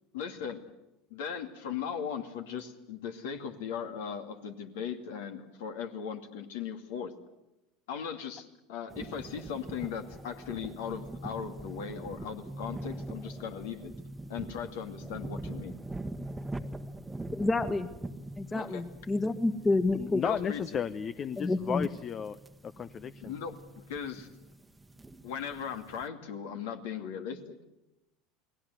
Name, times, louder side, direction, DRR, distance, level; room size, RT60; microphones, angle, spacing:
voice 1, 0.1-0.6 1.1-7.1 7.9-13.9 14.3-15.8 18.5-18.8 20.2-20.8 23.2-24.3 25.2-27.6, left 7 dB, 65° left, 6 dB, 2.5 m, -38 dB
sound 1, 8.9-26.1, right 1 dB, 10° right, 1.4 m, -43 dB
voice 2, 17.3-17.9 18.4-20.2 21.4-21.9, left 2 dB, 20° left, 10 dB, 1.9 m, -29 dB
voice 3, 19.9-22.4 22.6-23.4, left 7 dB, 35° left, 15 dB, 0.8 m, -34 dB
29.0 x 20.0 x 8.1 m, 0.96 s
figure-of-eight pair, 75°, 0 cm